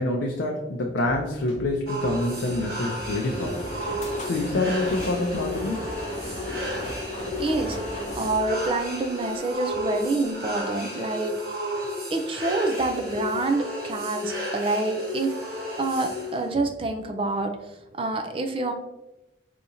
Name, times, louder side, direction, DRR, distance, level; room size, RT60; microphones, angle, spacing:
voice 1, 0.0-3.6 4.2-5.9, left 2 dB, 70° left, 1 dB, 0.5 m, -26 dB
Drum kit, 1.0-8.7, left 1 dB, 75° right, 1.2 m, -44 dB
sound 1, 1.9-16.5, left 1 dB, 55° right, 1.3 m, -33 dB
sound 2, 2.1-9.4, equal, 35° left, 0.8 m, -37 dB
voice 2, 7.4-7.8 8.2-11.3 12.1-15.3 15.8-17.6 17.9-18.7, right 2 dB, 30° right, 5 dB, 0.4 m, -27 dB
4.9 x 2.8 x 2.7 m, 0.95 s
head